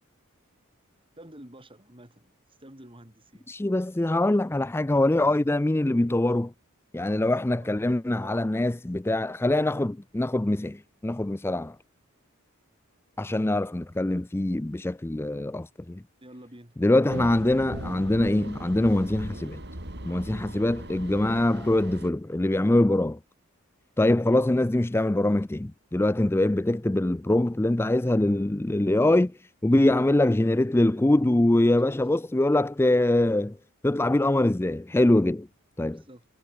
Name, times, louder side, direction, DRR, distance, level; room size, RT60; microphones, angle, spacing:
voice 1, 1.2-2.3 2.6-3.5 7.4-7.8 8.2-8.4 16.2-16.8 29.7-30.1 31.6-32.0 35.9-36.3, right 1 dB, 25° right, 5.8 m, -48 dB
voice 2, 3.5-6.5 6.9-11.8 13.2-16.0 16.8-19.6 20.0-23.2 24.0-29.4 29.6-33.6 33.8-35.5 35.8-36.0, left 1 dB, 10° left, 0.4 m, -23 dB
sound 1, 17.1-22.1, right 1 dB, 50° right, 4.8 m, -39 dB
head